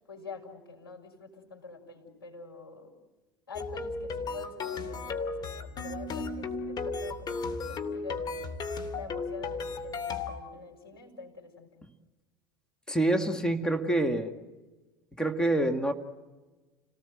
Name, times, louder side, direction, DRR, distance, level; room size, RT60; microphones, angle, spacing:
voice 1, 0.1-2.9 3.5-8.5 8.9-11.7, left 4 dB, 85° left, -1 dB, 6.3 m, -46 dB
sound 1, 3.5-10.4, left 4 dB, 35° left, 3.0 m, -35 dB
voice 2, 12.9-14.3 15.2-15.9, right 1 dB, 5° left, 5 dB, 2.1 m, -26 dB
29.5 x 19.0 x 8.1 m, 1.2 s
figure-of-eight pair, 75°, 12 cm